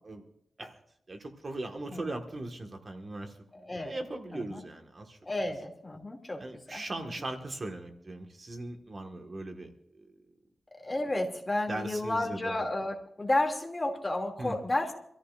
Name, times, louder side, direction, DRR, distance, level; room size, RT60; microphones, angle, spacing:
voice 1, 1.1-5.2 6.4-9.7 11.7-12.7 14.4-14.6, right 2 dB, 45° right, 4 dB, 1.6 m, -39 dB
voice 2, 3.5-4.0 4.3-4.6 5.2-6.4 6.7-7.1 10.7-14.9, left 2 dB, 25° left, 1 dB, 2.5 m, -32 dB
27.0 x 14.0 x 2.5 m, 0.73 s
wide cardioid pair, 80°, 0 cm